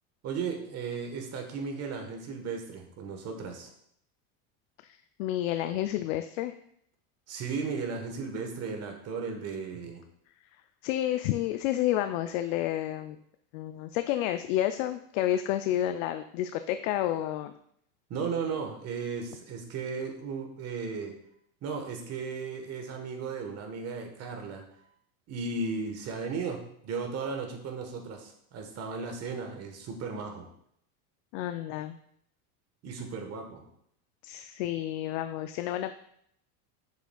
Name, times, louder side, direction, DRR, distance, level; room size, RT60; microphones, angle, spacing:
voice 1, 0.2-3.7 7.3-10.0 18.1-21.1 21.6-24.6 25.3-30.5 32.8-33.6, right 5 dB, 35° right, 4 dB, 1.3 m, -35 dB
voice 2, 4.8-6.5 10.8-13.2 13.5-17.5 31.3-32.0 34.2-35.9, left 12 dB, 65° left, 9 dB, 0.5 m, -30 dB
6.9 x 6.8 x 2.3 m, 0.70 s
supercardioid pair, 135°, 43 cm